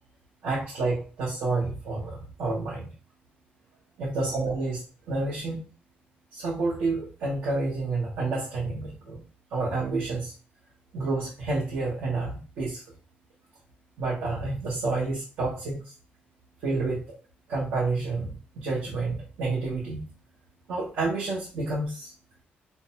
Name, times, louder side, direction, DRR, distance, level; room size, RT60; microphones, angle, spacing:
voice 1, 0.4-2.9 4.0-4.8 5.1-5.6 6.3-9.2 9.5-10.3 10.9-12.8 14.0-15.8 16.6-17.1 17.5-20.0 20.7-22.1, right 3 dB, 80° right, -6 dB, 0.9 m, -29 dB
2.6 x 2.1 x 2.8 m, 0.36 s
cardioid pair, 125°, 4 cm